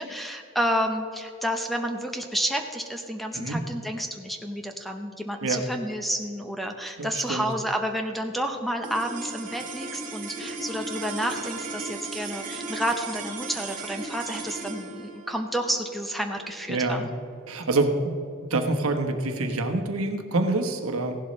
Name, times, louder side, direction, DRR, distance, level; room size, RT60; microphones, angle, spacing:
voice 1, 0.0-17.1, equal, ahead, 4 dB, 0.7 m, -30 dB
voice 2, 7.0-7.4 16.7-17.0 17.5-18.1 18.5-21.2, right 2 dB, 70° right, 5 dB, 1.2 m, -26 dB
sound 1, 8.8-19.3, right 3 dB, 40° right, 1.9 m, -37 dB
16.0 x 11.5 x 3.2 m, 2.5 s
head